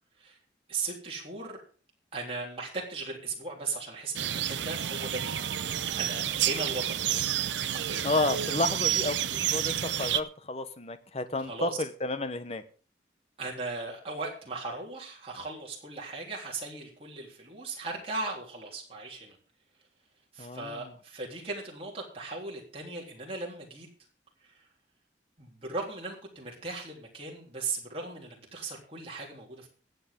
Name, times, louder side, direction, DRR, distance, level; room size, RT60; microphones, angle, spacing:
voice 1, 0.7-1.6 2.1-5.3 6.0-7.0 7.6-8.0 11.5-11.8 13.4-19.4 20.3-23.9 24.4-24.7 25.4-29.7, right 3 dB, 30° right, -2 dB, 3.5 m, -37 dB
sound 1, 4.2-10.2, right 10 dB, 90° right, 0.7 m, -30 dB
voice 2, 8.0-12.6 20.4-20.9, left 2 dB, 35° left, 11 dB, 1.0 m, -31 dB
22.5 x 8.0 x 3.8 m, 0.39 s
head